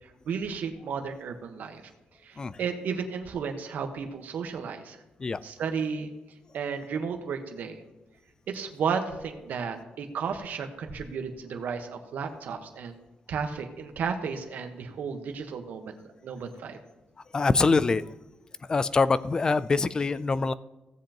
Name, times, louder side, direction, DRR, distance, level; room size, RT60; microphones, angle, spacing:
voice 1, 0.0-1.8 2.2-5.0 5.4-6.1 6.5-7.8 8.5-13.0 13.3-16.0 16.2-16.8, right 6 dB, 65° right, 5 dB, 1.2 m, -33 dB
voice 2, 17.3-18.1 18.7-20.5, left 4 dB, 25° left, 16 dB, 0.4 m, -24 dB
16.5 x 7.8 x 3.0 m, 1.0 s
cardioid pair, 150°, 3 cm